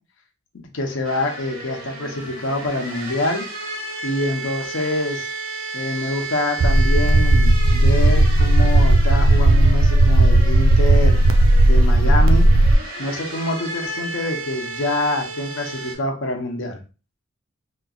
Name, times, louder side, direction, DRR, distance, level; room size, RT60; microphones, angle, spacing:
voice 1, 0.5-3.5 4.0-5.3 5.7-11.2 11.6-12.5 13.0-16.8, left 1 dB, 65° left, 3 dB, 0.8 m, -26 dB
sound 1, 1.0-16.0, right 2 dB, 90° right, 1.0 m, -33 dB
sound 2, 6.6-12.7, right 1 dB, 65° right, 0.4 m, -14 dB
3.1 x 3.0 x 2.4 m, 0.33 s
head